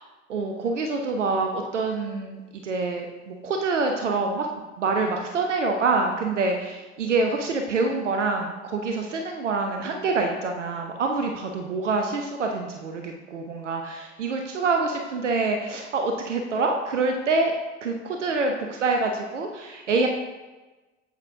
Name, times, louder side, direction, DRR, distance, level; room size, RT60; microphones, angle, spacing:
voice 1, 0.3-4.5 4.8-17.5 17.8-20.1, right 3 dB, 75° right, 3 dB, 0.7 m, -26 dB
8.1 x 7.7 x 2.6 m, 1.2 s
figure-of-eight pair, 65°, 36 cm